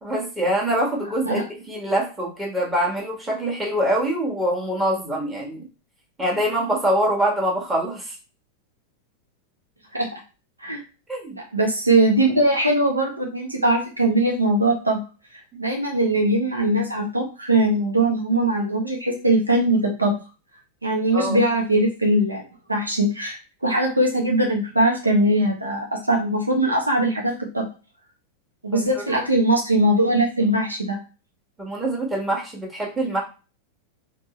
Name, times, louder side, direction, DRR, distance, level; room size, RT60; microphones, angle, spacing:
voice 1, 0.0-5.6 6.2-8.2 11.1-11.4 15.5-15.6 21.1-21.4 28.7-28.9 31.6-33.2, right 1 dB, 10° right, -2 dB, 1.5 m, -24 dB
voice 2, 11.5-15.0 15.6-20.1 20.8-22.4 22.7-27.6 28.6-31.0, right 1 dB, 80° right, 1 dB, 0.9 m, -21 dB
4.4 x 2.9 x 3.0 m, 0.32 s
figure-of-eight pair, 90°, 0 cm